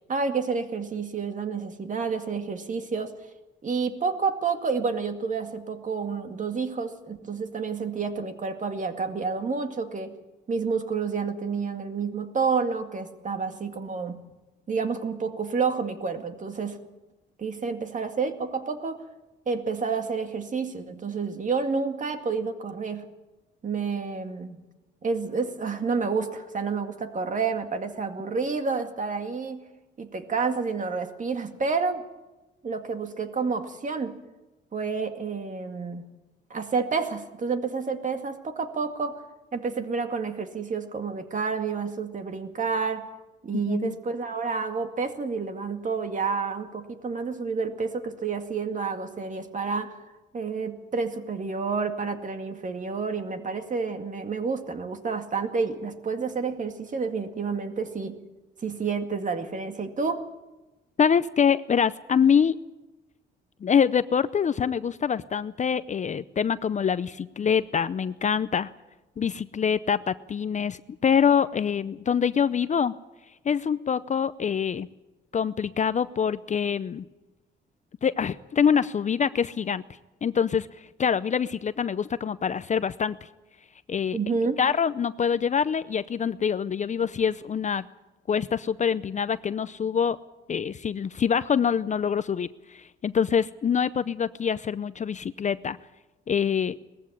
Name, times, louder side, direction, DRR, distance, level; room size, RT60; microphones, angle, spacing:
voice 1, 0.1-3.1 3.6-10.2 10.5-14.2 14.7-16.8 17.4-19.1 19.5-23.1 23.6-24.7 25.0-29.7 30.0-32.0 32.6-34.2 34.7-36.1 36.5-39.2 39.5-43.1 43.4-50.0 50.3-58.2 58.6-60.3 84.1-84.6, right 5 dB, 40° right, 6 dB, 2.2 m, -29 dB
voice 2, 61.0-62.6 63.6-68.7 69.2-72.9 73.4-74.9 75.3-77.0 78.0-79.8 80.2-83.2 83.9-84.2 84.6-87.8 88.3-90.2 90.5-95.8 96.3-96.8, left 7 dB, 35° left, 15 dB, 0.6 m, -25 dB
19.0 x 15.0 x 9.9 m, 1.1 s
cardioid pair, 90°, 20 cm